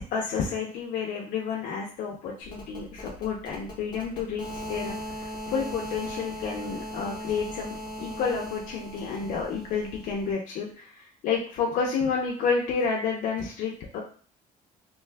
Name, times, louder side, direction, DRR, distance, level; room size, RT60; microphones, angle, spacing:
voice 1, 0.1-14.0, left 5 dB, 65° left, -1 dB, 0.5 m, -30 dB
sound 1, 2.4-10.3, equal, 30° left, 0.8 m, -38 dB
2.6 x 2.3 x 3.3 m, 0.44 s
cardioid pair, 175°, 14 cm